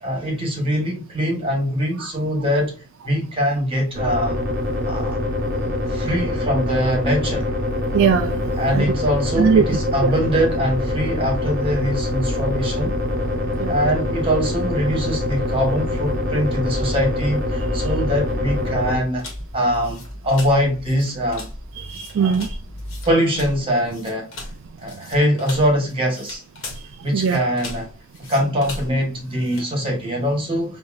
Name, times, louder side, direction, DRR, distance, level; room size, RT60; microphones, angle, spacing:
voice 1, 0.0-2.7 3.0-4.5 4.9-5.2 5.9-7.5 8.6-13.0 13.7-19.3 19.5-21.5 22.2-22.4 23.0-24.3 24.8-26.4 27.0-27.9 28.3-30.8, equal, 25° right, 1.4 m, -22 dB
sound 1, 3.9-19.0, left 1 dB, 45° right, 0.9 m, -24 dB
voice 2, 7.9-8.8 9.4-9.6 10.0-10.1 13.6-13.8 21.7-22.6 24.9-25.0 26.7-27.5, right 6 dB, 60° right, 0.3 m, -21 dB
sound 2, 14.7-23.1, equal, 30° left, 0.6 m, -36 dB
Playing Cards Being Dealt, 19.2-29.7, left 2 dB, 60° left, 1.4 m, -38 dB
4.7 x 2.7 x 2.5 m
head